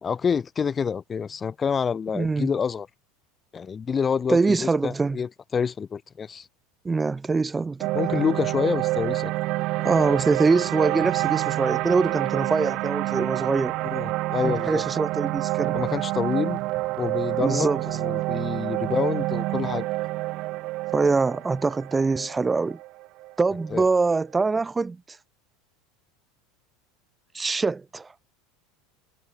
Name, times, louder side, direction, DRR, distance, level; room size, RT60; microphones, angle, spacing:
voice 1, 0.0-2.9 3.5-6.5 7.9-9.3 13.8-14.8 15.7-16.6 17.0-19.9 23.7-23.8, left 6 dB, 25° left, 1.0 m, -27 dB
voice 2, 2.1-2.5 4.3-5.2 6.8-7.9 9.8-13.8 14.4-15.8 17.4-17.8 20.9-22.8 23.4-25.2 27.3-28.1, right 4 dB, 15° right, 0.6 m, -24 dB
sound 1, 7.8-24.1, right 20 dB, 55° right, 1.0 m, -28 dB
hypercardioid pair, 85°, 0 cm